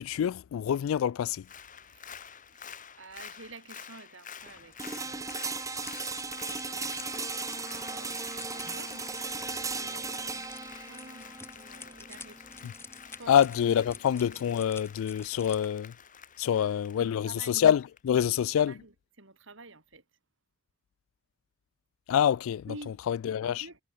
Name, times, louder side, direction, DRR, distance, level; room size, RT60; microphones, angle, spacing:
voice 1, 0.0-1.5 12.6-12.7 13.3-15.9 16.4-18.8 22.1-22.7 23.1-23.7, left 9 dB, 80° left, 0.3 m, -26 dB
Applause, 1.4-18.0 18.3-18.4, left 7 dB, 40° left, 2.8 m, -49 dB
voice 2, 2.5-9.1 9.7-12.5 12.8-13.4 13.6-13.8 16.4-17.6 18.6-20.0 22.7-23.0 23.4-23.8, right 3 dB, 65° right, 3.9 m, -51 dB
sound 1, 4.4-15.7, left 3 dB, 10° left, 2.7 m, -51 dB
sound 2, 4.8-14.7, right 4 dB, 15° right, 1.0 m, -37 dB
head